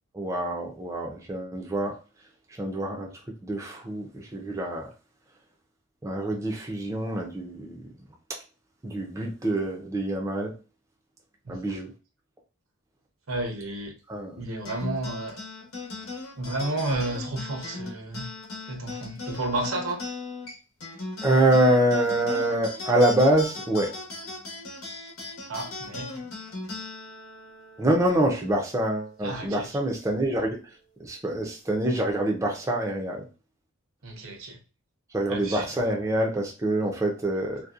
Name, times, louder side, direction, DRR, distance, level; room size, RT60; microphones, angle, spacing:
voice 1, 0.1-2.0 2.6-3.1 3.4-4.9 6.0-7.8 8.8-10.5 11.5-11.9 14.1-14.4 21.2-23.9 27.8-30.6 31.0-33.2 35.1-37.6, right 1 dB, 15° right, 0.4 m, -25 dB
voice 2, 11.5-11.8 13.3-13.9 14.4-15.4 16.4-18.3 18.7-20.0 25.5-26.2 29.2-29.7 34.0-34.6 35.3-35.7, right 2 dB, 80° right, 0.7 m, -32 dB
sound 1, 14.6-29.4, left 3 dB, 90° left, 0.9 m, -39 dB
2.7 x 2.1 x 2.4 m
head